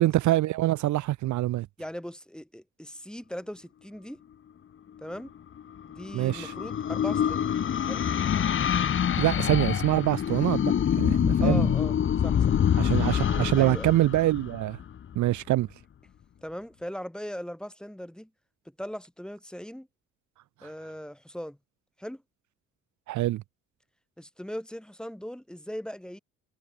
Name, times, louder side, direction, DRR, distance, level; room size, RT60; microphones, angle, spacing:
voice 1, 0.0-1.7 6.1-6.5 9.2-11.7 12.8-14.8 15.2-15.7 23.1-23.4, right 15 dB, 70° right, 0.6 m, -25 dB
voice 2, 1.8-4.2 5.0-5.3 5.9-7.6 7.9-8.1 11.4-12.0 12.2-12.6 13.6-14.0 16.4-18.3 18.8-19.9 20.6-21.6 22.0-22.2 24.2-26.2, equal, 5° left, 1.8 m, -39 dB
sound 1, 5.6-15.1, left 9 dB, 40° left, 0.8 m, -26 dB
cardioid pair, 90°, 30 cm